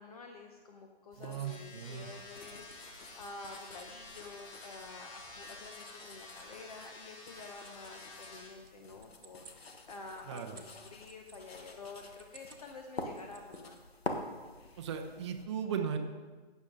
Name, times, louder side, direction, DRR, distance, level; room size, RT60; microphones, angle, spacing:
voice 1, 0.0-13.8, left 3 dB, 35° left, 3 dB, 0.9 m, -49 dB
sound 1, 1.1-15.5, left 2 dB, 70° left, 1.5 m, -48 dB
voice 2, 1.2-2.1 10.3-10.6 14.8-16.0, right 7 dB, 25° right, 4 dB, 0.8 m, -37 dB
sound 2, 1.5-8.5, left 2 dB, 10° left, 1.4 m, -51 dB
sound 3, 8.6-11.4 12.0-12.7 13.0-13.8, right 6 dB, 65° right, 1.3 m, -57 dB
15.0 x 7.3 x 3.8 m, 1.3 s
figure-of-eight pair, 145°, 31 cm